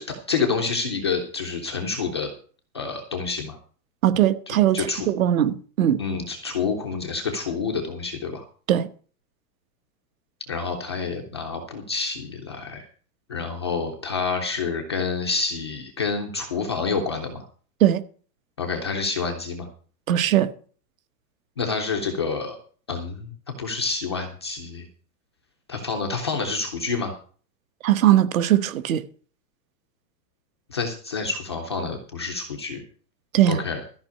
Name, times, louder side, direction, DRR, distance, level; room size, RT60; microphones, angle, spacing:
voice 1, 0.0-2.3 2.7-3.6 4.5-5.1 6.0-8.4 10.5-12.9 13.3-17.4 18.6-19.7 21.6-22.6 22.9-23.3 23.6-24.8 25.7-27.1 30.7-32.8 33.5-33.8, left 4 dB, 20° left, 0.5 m, -28 dB
voice 2, 4.0-6.0 8.7-8.9 17.8-18.0 20.1-20.5 27.8-29.0 33.3-33.6, right 12 dB, 55° right, 1.2 m, -20 dB
13.5 x 5.5 x 8.1 m
supercardioid pair, 175°, 50 cm